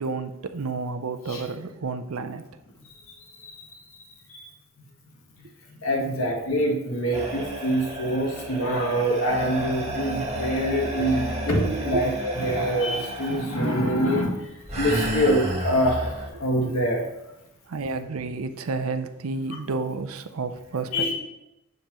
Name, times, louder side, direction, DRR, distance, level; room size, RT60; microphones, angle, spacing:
voice 1, 0.0-2.4 11.0-11.1 11.9-12.0 16.3-16.4 17.7-21.2, right 4 dB, 75° right, 9 dB, 0.5 m, -31 dB
voice 2, 5.8-14.3 14.8-16.1 16.4-17.0 20.9-21.2, equal, 70° left, -1 dB, 1.5 m, -25 dB
sound 1, 7.1-13.6 14.7-16.3, right 1 dB, 30° right, 1.2 m, -31 dB
7.3 x 6.6 x 3.0 m, 0.92 s
head